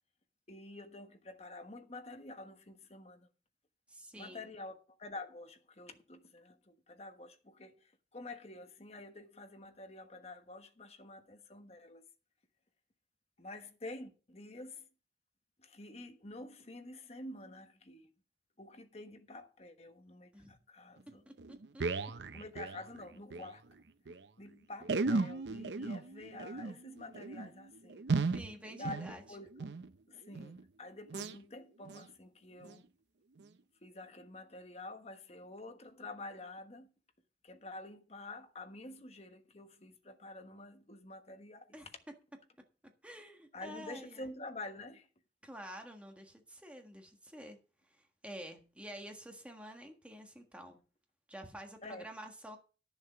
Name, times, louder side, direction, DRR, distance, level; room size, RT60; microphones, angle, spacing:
voice 1, 0.5-3.3 4.2-12.0 13.4-14.9 15.6-18.1 18.6-21.2 22.3-23.6 24.4-28.0 28.8-29.7 30.1-32.8 33.8-36.9 37.4-41.8 43.5-45.1 51.8-52.1, left 2 dB, 35° left, 1.3 m, -48 dB
voice 2, 3.9-4.5 20.3-20.5 21.2-21.3 21.7-21.8 28.3-29.2 41.7-41.9 43.0-44.3 45.4-47.6 47.8-50.8 51.3-52.6, equal, 5° right, 1.5 m, -49 dB
sound 1, 21.0-21.1 21.4-23.5 23.8-23.9 24.1-24.2 24.8-29.9 30.3-30.6 31.1-31.4 31.8-32.1 32.6-32.8 33.4-33.5, right 3 dB, 85° right, 0.7 m, -36 dB
11.0 x 7.2 x 5.1 m
head